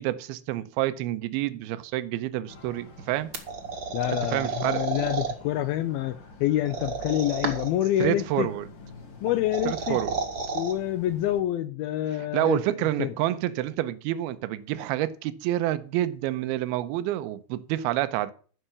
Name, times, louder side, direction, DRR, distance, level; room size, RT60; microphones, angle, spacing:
voice 1, 0.0-3.3 4.3-4.9 8.0-8.7 9.7-10.1 12.3-18.3, right 14 dB, 80° right, 2.5 m, -28 dB
sound 1, 2.5-11.4, left 2 dB, 50° left, 3.7 m, -48 dB
sound 2, 3.3-5.3 6.6-7.8 9.3-10.7, right 4 dB, 45° right, 1.3 m, -31 dB
voice 2, 3.9-8.5 9.2-10.0 10.5-12.6 13.0-13.1, left 13 dB, 80° left, 2.3 m, -27 dB
14.5 x 5.9 x 7.0 m
omnidirectional pair, 4.8 m